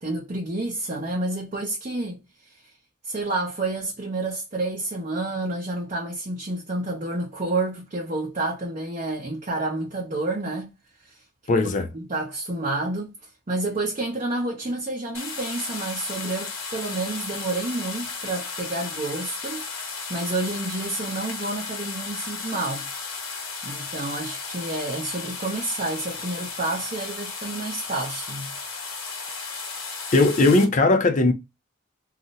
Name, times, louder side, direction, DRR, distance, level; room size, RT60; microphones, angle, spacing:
voice 1, 0.0-2.2 3.0-10.7 11.0-11.2 11.4-11.5 11.9-13.1 13.5-22.9 23.3-28.5, right 2 dB, 35° right, 0.6 m, -29 dB
voice 2, 11.5-11.9 30.1-31.3, left 2 dB, 40° left, 0.5 m, -18 dB
sound 1, 15.1-30.6, left 4 dB, 85° left, 1.0 m, -34 dB
2.4 x 2.0 x 3.9 m
head